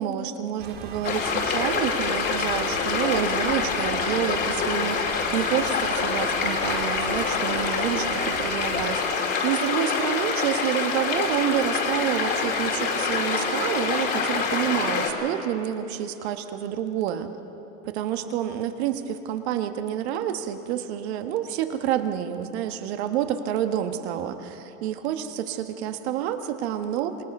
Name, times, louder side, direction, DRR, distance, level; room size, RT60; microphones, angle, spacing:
voice 1, 0.0-17.3 17.9-27.2, right 10 dB, 50° right, 7 dB, 1.4 m, -28 dB
sound 1, 0.6-9.0, right 5 dB, 25° right, 1.4 m, -40 dB
sound 2, 1.0-15.1, left 5 dB, 25° left, 2.3 m, -26 dB
27.0 x 18.0 x 5.5 m, 3.0 s
supercardioid pair, 155°, 41 cm